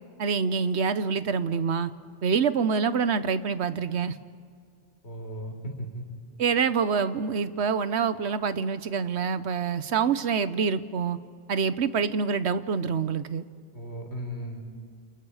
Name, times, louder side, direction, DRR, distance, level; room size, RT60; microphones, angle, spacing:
voice 1, 0.2-1.9 2.2-4.2 6.4-11.2 11.5-13.4, right 6 dB, 90° right, 13 dB, 1.2 m, -26 dB
voice 2, 5.0-6.0 13.7-14.6, equal, 80° left, 2 dB, 4.9 m, -36 dB
29.5 x 28.5 x 4.9 m, 2.2 s
omnidirectional pair, 1.1 m